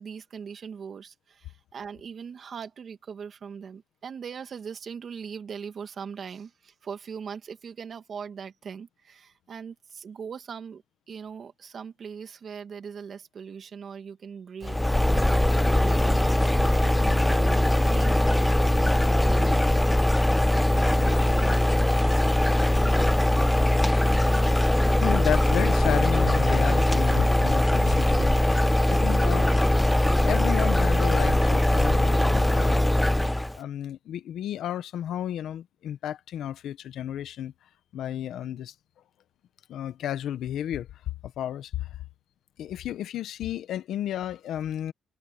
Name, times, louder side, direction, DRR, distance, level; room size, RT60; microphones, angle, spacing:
voice 1, 0.0-15.5 15.8-17.3 17.8-18.7, right 6 dB, 50° right, 2.3 m, -40 dB
sound 1, 14.6-33.6, left 1 dB, 10° left, 0.3 m, -21 dB
sound 2, 16.8-17.9 18.8-19.9 20.7-21.8 22.7-23.3 24.0-24.6, right 10 dB, 75° right, 3.1 m, -42 dB
voice 2, 25.0-28.6 28.9-29.5 30.2-32.8 33.5-37.5 37.9-38.7 39.7-40.9 41.2-41.9 42.6-44.9, left 11 dB, 75° left, 1.4 m, -32 dB
cardioid pair, 90°, 0 cm